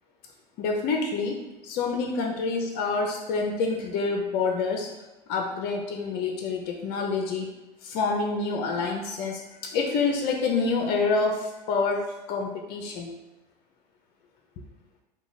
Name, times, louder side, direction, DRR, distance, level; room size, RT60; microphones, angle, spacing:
voice 1, 0.6-4.9 5.3-7.5 7.8-12.0 12.3-13.1, left 4 dB, 50° left, 2 dB, 0.5 m, -27 dB
2.9 x 2.2 x 3.9 m, 1.0 s
hypercardioid pair, 80°, 21 cm